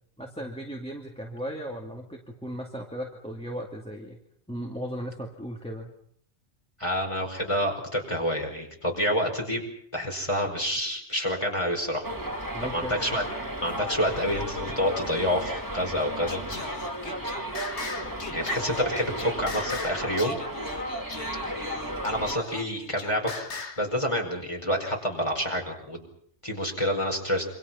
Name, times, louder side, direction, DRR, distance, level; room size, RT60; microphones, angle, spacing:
voice 1, 0.2-4.2 4.5-5.9 12.5-13.1, equal, 5° left, 0 dB, 2.4 m, -36 dB
voice 2, 6.8-12.1 12.6-13.2 13.6-16.4 18.3-20.4 22.0-23.3 23.8-26.1 26.4-27.5, equal, 25° left, 2 dB, 5.2 m, -28 dB
Subway metro underground, 12.0-22.4, right 1 dB, 15° right, 2.5 m, -34 dB
Singing, 16.3-23.9, left 4 dB, 65° left, 2.1 m, -39 dB
27.5 x 25.5 x 5.7 m, 0.65 s
omnidirectional pair, 1.3 m